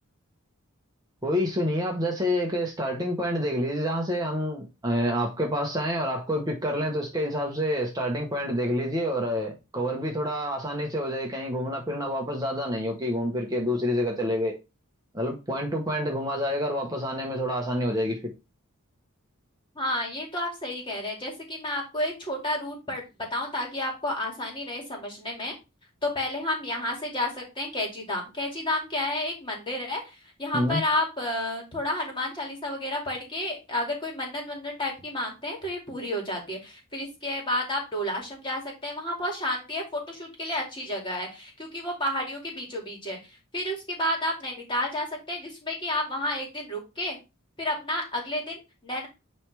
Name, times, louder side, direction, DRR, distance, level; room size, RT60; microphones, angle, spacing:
voice 1, 1.2-14.6 15.1-18.3 30.5-30.8, equal, 15° right, 1.0 m, -28 dB
voice 2, 19.8-25.5 26.0-30.0 30.4-43.2 43.5-47.2 47.6-49.1, left 1 dB, 25° left, 2.4 m, -31 dB
9.3 x 3.3 x 3.3 m
head